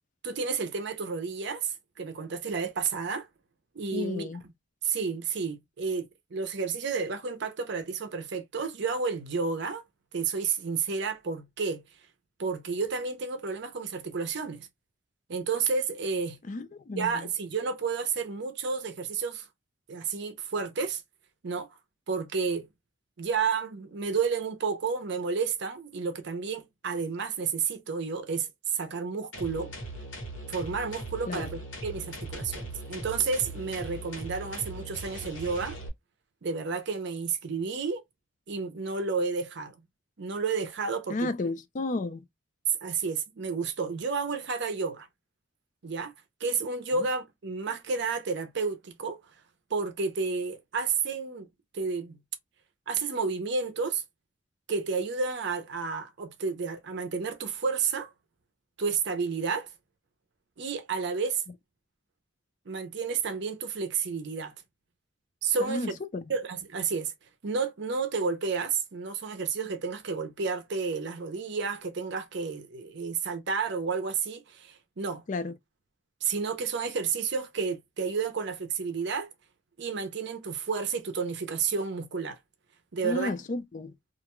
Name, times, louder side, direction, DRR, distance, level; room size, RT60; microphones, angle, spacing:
voice 1, 0.2-3.3 3.7-4.3 4.8-9.8 10.1-11.8 12.4-14.7 15.3-16.4 17.0-19.5 19.9-21.0 21.4-21.7 22.1-22.7 23.2-29.7 30.5-35.8 36.4-38.0 38.5-39.7 40.2-41.3 42.8-45.1 45.8-46.1 46.4-49.2 49.7-51.5 51.7-52.2 52.9-54.0 54.7-58.1 58.8-59.7 60.6-61.4 62.7-64.5 65.4-65.9 66.3-67.1 67.4-75.2 76.2-79.3 79.8-82.4 82.9-83.3, right 5 dB, 60° right, 0.5 m, -31 dB
voice 2, 3.9-4.4 16.5-17.3 31.3-31.4 41.1-42.2 65.6-66.2 75.3-75.5 83.0-83.9, left 2 dB, 40° left, 0.4 m, -32 dB
sound 1, 29.3-35.9, right 1 dB, 80° left, 1.1 m, -40 dB
2.4 x 2.2 x 3.0 m
head